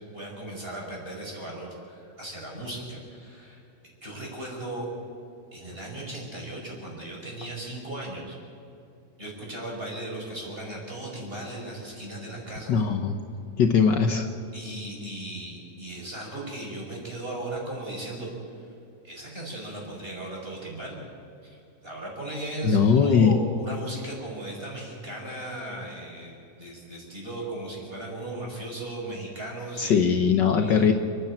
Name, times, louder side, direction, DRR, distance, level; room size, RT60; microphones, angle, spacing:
voice 1, 0.1-3.6 4.0-4.9 5.5-8.4 9.2-12.7 14.5-18.3 18.6-18.7 19.0-21.0 21.4-30.0 30.6-30.9, right 1 dB, 15° right, -2 dB, 5.8 m, -37 dB
voice 2, 12.7-13.2 13.6-14.3 22.6-23.4 29.8-30.9, left 6 dB, 85° left, 6 dB, 0.9 m, -20 dB
29.5 x 10.5 x 8.8 m, 2.8 s
omnidirectional pair, 3.4 m